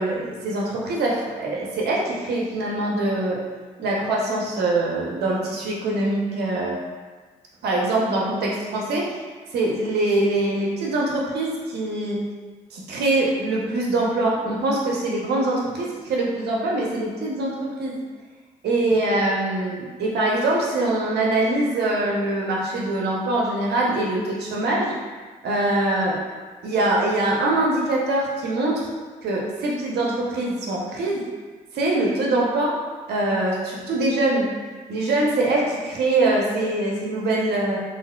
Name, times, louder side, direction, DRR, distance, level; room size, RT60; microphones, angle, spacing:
voice 1, 0.0-3.4 3.8-6.8 7.6-9.2 9.5-12.2 12.7-18.0 18.6-25.0 25.4-26.2 26.6-28.9 29.2-31.3 31.7-32.8 33.1-34.5 34.9-37.8, right 2 dB, 70° right, -3 dB, 0.7 m, -23 dB
3.3 x 2.5 x 2.2 m, 1.4 s
hypercardioid pair, 45°, 17 cm